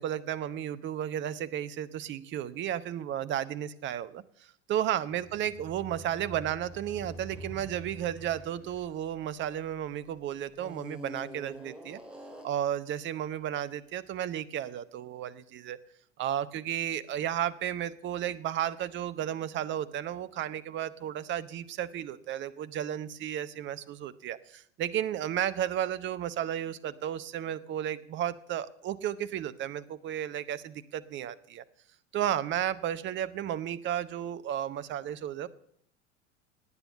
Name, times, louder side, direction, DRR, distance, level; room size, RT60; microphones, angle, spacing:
voice 1, 0.0-12.0 12.4-15.8 16.2-31.6 32.1-35.5, right 10 dB, 30° right, 16 dB, 0.9 m, -33 dB
sound 1, 5.1-9.9 10.5-12.7, right 1 dB, 5° right, 2.9 m, -46 dB
18.0 x 9.1 x 6.8 m, 0.68 s
figure-of-eight pair, 80°, 37 cm